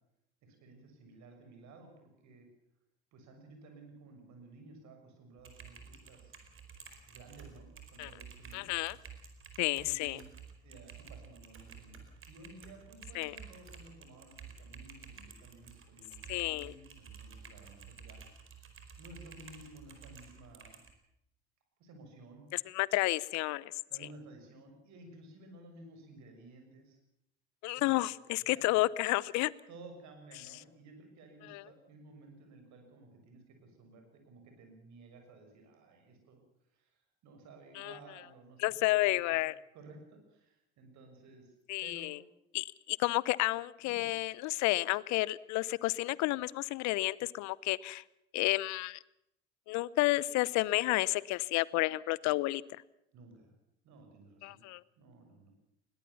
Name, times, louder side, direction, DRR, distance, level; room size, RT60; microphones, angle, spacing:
voice 1, 0.4-2.5 3.1-6.3 7.0-8.7 9.7-10.3 10.6-18.2 19.0-20.8 21.8-22.5 23.9-27.0 27.7-28.8 29.7-36.4 36.7-39.4 39.7-41.5 41.8-42.2 43.8-44.1 53.1-53.5 53.8-54.6 55.0-55.5, right 2 dB, 55° right, 4 dB, 6.6 m, -55 dB
Typing, 5.4-20.9, right 6 dB, 40° right, 4.5 m, -52 dB
voice 2, 8.5-8.9 9.6-10.2 13.2-13.4 16.3-16.7 22.7-23.6 27.6-29.5 31.5-31.6 37.8-37.9 38.6-39.5 41.7-42.2 42.5-48.0 48.3-49.0 49.7-52.6 54.4-54.8, left 20 dB, 55° left, 22 dB, 0.8 m, -31 dB
21.0 x 18.0 x 7.2 m, 0.81 s
hypercardioid pair, 65°, 33 cm